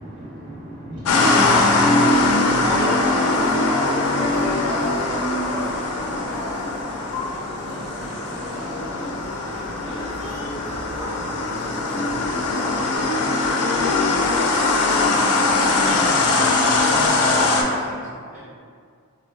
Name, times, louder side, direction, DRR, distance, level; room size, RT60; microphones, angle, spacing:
voice 1, 0.0-7.0 7.9-10.3 18.3-18.4, equal, 90° right, -9 dB, 0.7 m, -35 dB
sound 1, 1.1-17.6, left 2 dB, 85° left, 0.4 m, -21 dB
sound 2, 1.7-13.0, equal, 60° right, 1.0 m, -38 dB
voice 2, 3.2-4.4 7.1-7.8 10.2-10.6 10.9-11.2 14.6-15.4 17.7-17.9 18.2-18.5, left 2 dB, 35° left, -6 dB, 0.6 m, -36 dB
voice 3, 13.6-14.0 16.5-17.4 17.6-18.1, equal, 35° right, -13 dB, 0.7 m, -40 dB
3.4 x 2.1 x 2.2 m, 2.1 s
head